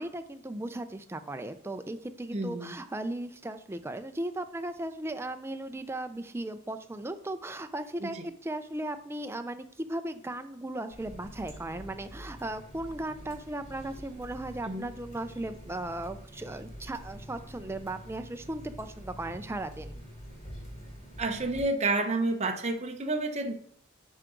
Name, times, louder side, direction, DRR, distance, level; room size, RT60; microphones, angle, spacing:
voice 1, 0.0-19.9, right 1 dB, 10° right, 8 dB, 0.4 m, -37 dB
voice 2, 2.3-2.7 8.0-8.2 14.7-14.9 21.2-23.5, right 2 dB, 35° right, 4 dB, 0.8 m, -30 dB
Water tap faucet, 10.9-21.6, equal, 35° left, 3.3 m, -46 dB
9.1 x 4.9 x 3.8 m, 0.63 s
head